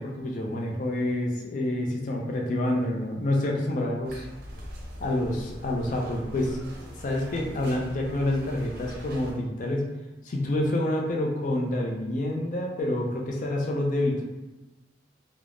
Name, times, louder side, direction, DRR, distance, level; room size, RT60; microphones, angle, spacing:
voice 1, 0.0-4.3 5.0-6.6 7.0-9.9 10.2-14.2, left 1 dB, 45° left, 0 dB, 0.4 m, -28 dB
sound 1, 4.0-9.3, equal, 55° right, 0.6 m, -42 dB
3.2 x 2.0 x 2.5 m, 1.1 s
head